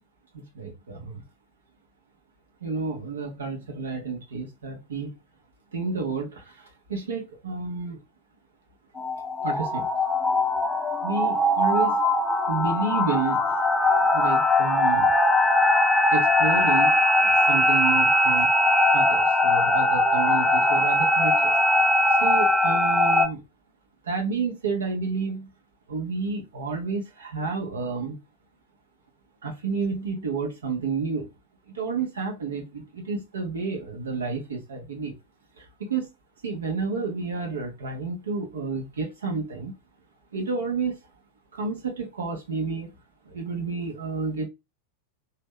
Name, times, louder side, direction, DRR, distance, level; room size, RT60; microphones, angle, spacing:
voice 1, 0.3-1.2 2.6-5.1 5.7-8.0 9.4-9.9 11.0-12.0 12.5-15.2 16.1-18.5 18.9-21.6 22.1-23.4 24.0-25.5 25.9-28.2 29.4-31.3 31.7-35.2 35.6-36.1 36.4-39.7 40.3-40.9 41.5-42.9 43.2-44.5, right 4 dB, 65° right, 0.8 m, -30 dB
sound 1, 9.0-23.3, left 1 dB, 5° left, 0.5 m, -21 dB
3.0 x 2.2 x 3.4 m
figure-of-eight pair, 90°, 0 cm